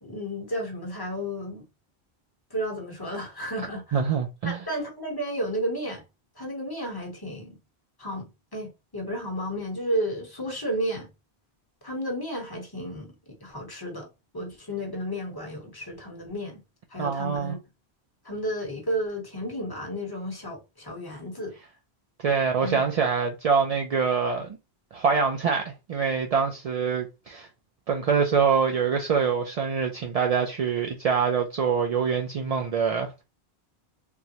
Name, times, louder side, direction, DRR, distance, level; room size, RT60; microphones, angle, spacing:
voice 1, 0.0-1.6 2.5-4.0 4.4-6.0 6.4-7.6 8.0-11.1 11.8-13.1 13.4-14.1 14.3-16.6 16.9-17.6 18.2-21.5 22.6-22.8, equal, 25° left, 1.0 m, -32 dB
voice 2, 3.9-4.6 17.0-17.5 22.2-24.5 24.9-27.5 27.9-33.2, right 6 dB, 55° right, 0.4 m, -25 dB
3.7 x 2.0 x 2.8 m
omnidirectional pair, 1.1 m